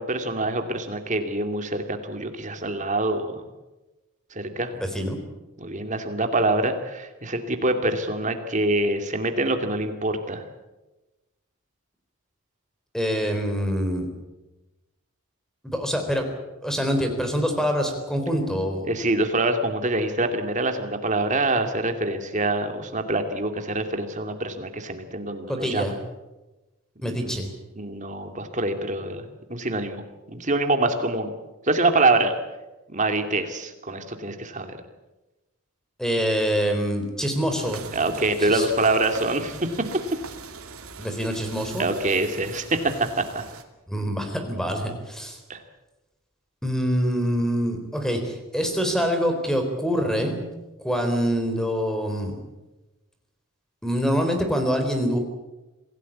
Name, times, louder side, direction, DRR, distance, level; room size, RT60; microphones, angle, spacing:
voice 1, 0.0-3.4 4.3-4.7 5.6-10.4 18.8-25.9 27.0-27.4 27.8-30.0 30.3-31.3 31.6-32.3 32.9-34.8 37.9-39.7 41.8-43.4 45.5-45.6, right 2 dB, 35° right, 6 dB, 2.5 m, -25 dB
voice 2, 12.9-14.1 15.6-16.3 16.6-18.9 25.5-26.0 27.0-27.5 36.0-37.8 38.4-38.7 41.0-41.9 43.9-45.4 46.6-50.4 50.8-52.4 53.8-55.2, equal, ahead, 5 dB, 3.9 m, -25 dB
sound 1, 37.6-43.6, right 5 dB, 90° right, 2.4 m, -41 dB
26.5 x 16.5 x 8.6 m, 1.1 s
head